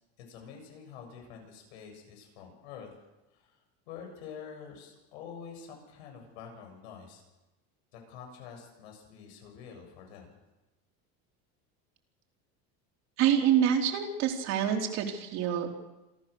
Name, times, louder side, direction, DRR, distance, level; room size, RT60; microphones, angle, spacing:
voice 1, 0.2-2.9 3.3-3.5 3.9-7.2 7.9-10.3, left 7 dB, 90° left, 3 dB, 7.4 m, -47 dB
voice 2, 13.2-15.7, right 9 dB, 55° right, 3 dB, 3.7 m, -26 dB
27.5 x 14.5 x 6.8 m, 1.0 s
cardioid pair, 140°, 32 cm